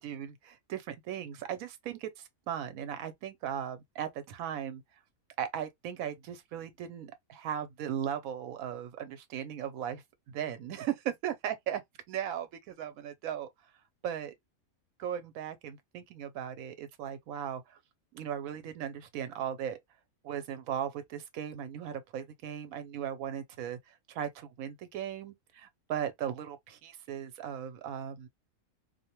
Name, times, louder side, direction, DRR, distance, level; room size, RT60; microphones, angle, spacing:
voice 1, 0.0-4.8 5.4-11.8 12.1-13.5 14.0-14.3 15.0-17.8 18.1-19.8 20.2-28.3, right 9 dB, 75° right, 1.0 m, -37 dB
2.6 x 2.1 x 2.8 m
omnidirectional pair, 1.5 m